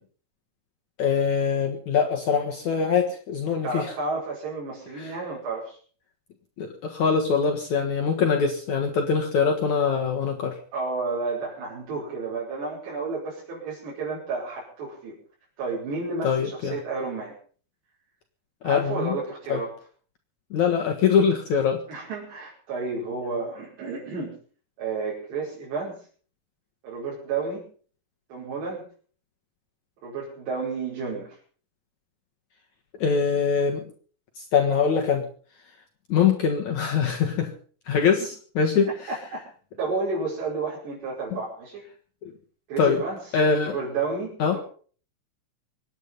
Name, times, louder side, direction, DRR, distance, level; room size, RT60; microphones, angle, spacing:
voice 1, 1.0-3.9 5.0-5.1 6.6-10.6 16.2-16.8 18.6-19.2 19.5-19.6 20.5-21.8 33.0-33.8 34.4-35.3 36.1-37.5 37.9-38.9 42.2-42.3 42.8-43.0 43.3-43.8 44.4-44.6, left 6 dB, 60° left, 3 dB, 2.3 m, -23 dB
voice 2, 3.6-5.8 10.7-15.2 15.6-17.3 18.6-19.7 21.9-24.3 24.8-26.0 26.8-27.7 28.3-28.8 30.0-31.4 39.1-39.2 39.8-41.8 42.7-43.2 43.6-44.6, right 4 dB, 75° right, -7 dB, 7.5 m, -31 dB
24.5 x 10.5 x 5.4 m, 0.44 s
omnidirectional pair, 4.9 m